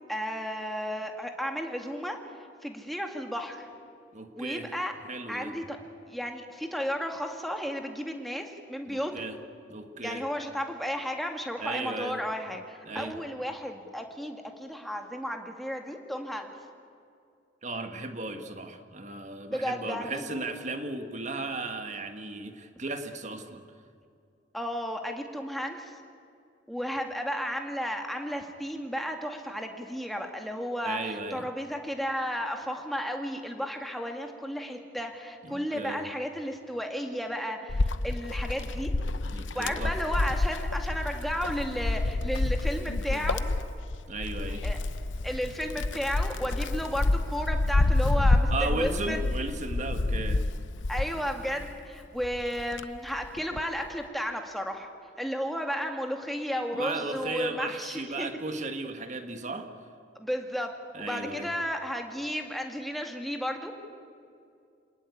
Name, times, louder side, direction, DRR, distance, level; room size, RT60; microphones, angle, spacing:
voice 1, 0.1-2.2 2.6-3.7 4.4-4.9 5.3-5.8 6.1-9.2 10.0-16.5 19.5-20.3 24.5-25.9 26.7-38.9 39.5-43.4 44.6-44.8 45.2-49.2 50.9-54.9 55.2-58.3 60.2-60.7 61.0-63.7, equal, ahead, 3 dB, 2.1 m, -33 dB
voice 2, 4.1-4.8 5.0-5.5 8.9-9.4 9.7-10.2 11.6-12.2 12.8-13.1 17.6-23.6 30.8-31.5 35.4-36.1 39.3-40.0 44.1-44.7 48.5-50.5 56.7-59.7 60.9-61.5, right 2 dB, 40° right, 7 dB, 1.5 m, -35 dB
Wind, 37.7-51.8 52.2-53.7, left 2 dB, 75° left, 0.8 m, -28 dB
26.5 x 19.0 x 9.5 m, 2.4 s
head